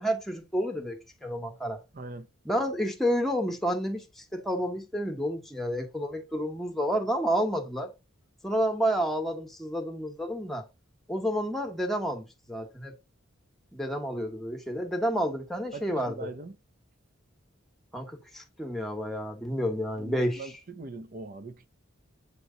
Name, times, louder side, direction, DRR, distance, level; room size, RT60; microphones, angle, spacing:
voice 1, 0.0-1.8 2.4-7.9 8.4-10.6 11.1-12.9 13.7-16.3 17.9-20.5, equal, ahead, 1.1 m, -30 dB
voice 2, 1.9-2.3 14.1-14.3 15.7-16.6 20.0-21.7, right 3 dB, 40° right, 0.7 m, -41 dB
8.2 x 3.1 x 3.8 m
head